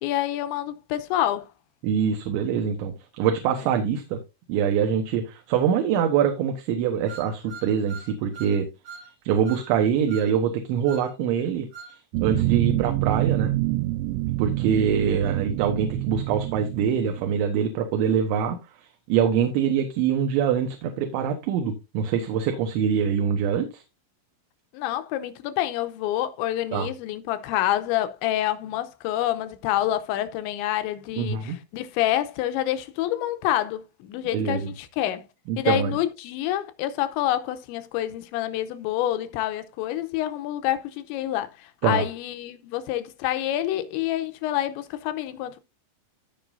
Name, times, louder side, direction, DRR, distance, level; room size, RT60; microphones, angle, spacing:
voice 1, 0.0-1.5 24.7-35.3 35.6-45.6, left 13 dB, 80° left, 2.9 m, -27 dB
voice 2, 1.8-4.2 4.5-8.7 9.2-13.5 14.4-23.8 26.7-26.9 31.2-31.6 34.3-34.7 35.5-35.9 41.8-42.0, right 8 dB, 75° right, 3.3 m, -24 dB
sound 1, 7.1-8.6 8.9-9.1 9.5-9.7 10.1-10.3 10.9-11.1 11.7-12.0, right 5 dB, 55° right, 3.3 m, -42 dB
sound 2, 12.1-17.4, right 18 dB, 90° right, 2.5 m, -27 dB
16.0 x 5.4 x 2.6 m
omnidirectional pair, 5.7 m